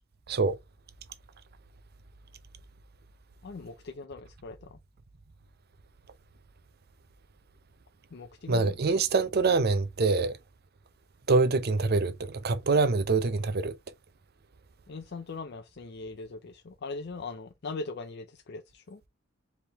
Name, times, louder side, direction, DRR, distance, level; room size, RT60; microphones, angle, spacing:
voice 1, 3.4-4.8 8.1-8.6 14.9-19.0, left 3 dB, 55° left, 0.5 m, -40 dB
voice 2, 8.5-10.3 11.3-12.1 12.4-13.7, right 3 dB, 50° right, 0.6 m, -25 dB
4.5 x 3.5 x 3.0 m
head